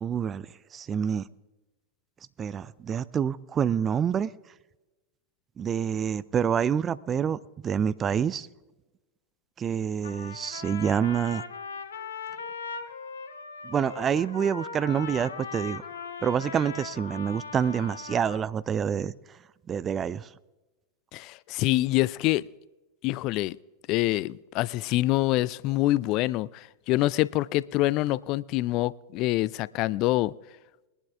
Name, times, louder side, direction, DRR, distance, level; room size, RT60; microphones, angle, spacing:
voice 1, 0.0-1.2 2.4-4.3 5.6-7.4 7.6-8.5 9.6-11.4 13.6-15.8 16.2-19.1 19.7-20.3, right 8 dB, 25° right, 0.5 m, -27 dB
Trumpet, 10.0-18.4, left 5 dB, 65° left, 1.1 m, -39 dB
voice 2, 21.1-22.4 23.0-23.6 23.9-30.3, left 17 dB, 40° left, 0.3 m, -26 dB
21.0 x 11.0 x 3.4 m
figure-of-eight pair, 90°, 0 cm